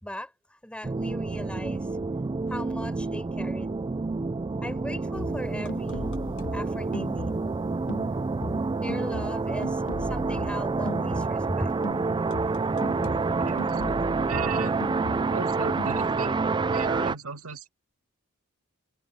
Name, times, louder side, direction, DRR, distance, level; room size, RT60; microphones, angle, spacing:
voice 1, 0.0-1.9 2.5-3.8 4.6-6.1 6.5-7.4 7.7-7.8 8.8-11.7 12.1-12.2 12.7-13.5, equal, 5° left, 4.5 m, -38 dB
sound 1, 0.8-17.2, right 4 dB, 20° right, 0.3 m, -28 dB
sound 2, 5.1-7.6 7.9-11.6 11.8-15.5 15.8-16.1, left 1 dB, 60° left, 1.1 m, -38 dB
voice 2, 13.4-13.7 14.3-14.8 15.3-16.4 16.7-17.7, right 4 dB, 90° right, 2.1 m, -35 dB
head